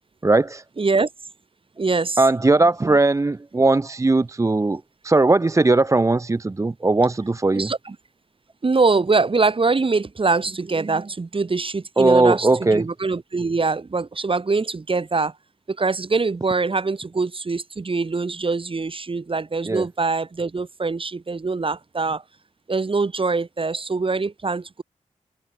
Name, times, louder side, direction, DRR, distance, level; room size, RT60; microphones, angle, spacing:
voice 1, 0.2-0.6 2.2-7.7 12.0-12.9 19.7-19.9, right 2 dB, 25° right, 0.6 m, -19 dB
voice 2, 0.8-1.1 1.8-2.2 2.8-3.0 7.5-8.0 8.6-15.3 15.7-22.2 22.7-24.8, right 4 dB, 40° right, 4.1 m, -23 dB
wide cardioid pair, 105°, 13 cm